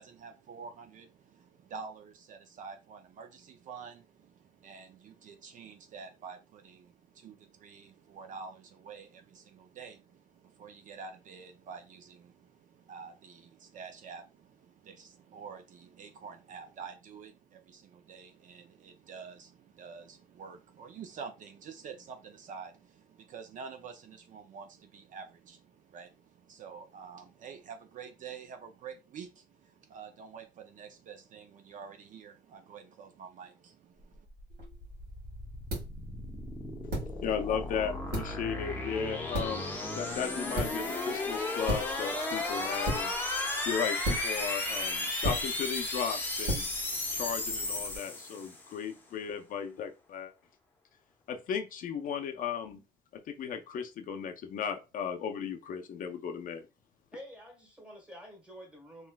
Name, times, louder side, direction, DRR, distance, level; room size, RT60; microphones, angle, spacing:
voice 1, 0.0-34.3, right 6 dB, 50° right, 0.4 m, -48 dB
sound 1, 34.2-48.7, left 2 dB, 10° left, 0.8 m, -35 dB
sound 2, 34.5-48.0, right 1 dB, 65° right, 1.9 m, -39 dB
voice 2, 37.2-39.6 39.9-43.1 43.6-46.7 47.1-50.3 51.3-52.8 53.3-56.6, left 7 dB, 55° left, 0.5 m, -35 dB
voice 3, 57.1-59.1, equal, 5° right, 1.3 m, -48 dB
3.2 x 2.9 x 2.2 m
cardioid pair, 110°, 17 cm